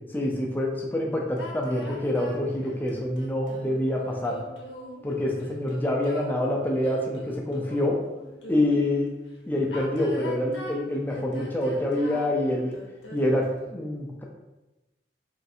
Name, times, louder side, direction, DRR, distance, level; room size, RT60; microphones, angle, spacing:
voice 1, 0.1-4.4 5.0-8.0 8.5-9.1 9.5-12.8 13.1-14.2, left 1 dB, 10° left, -1 dB, 0.4 m, -26 dB
sound 1, 1.4-8.9 9.6-13.6, left 1 dB, 85° left, 0.7 m, -42 dB
3.1 x 2.5 x 2.7 m, 1.1 s
head